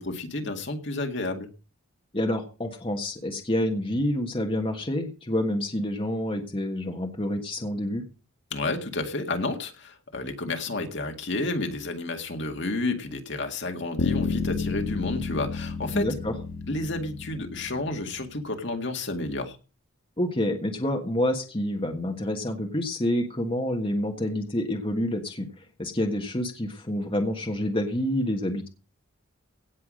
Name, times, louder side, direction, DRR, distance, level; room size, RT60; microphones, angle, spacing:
voice 1, 0.0-1.5 8.5-16.1 16.7-19.6, left 2 dB, 55° left, 4 dB, 2.0 m, -31 dB
voice 2, 2.1-8.0 15.9-16.3 20.2-25.5 25.8-28.7, left 1 dB, 25° left, 2 dB, 1.5 m, -28 dB
Bass guitar, 14.0-18.3, left 4 dB, 85° left, 1.8 m, -31 dB
17.5 x 5.9 x 6.4 m, 0.35 s
head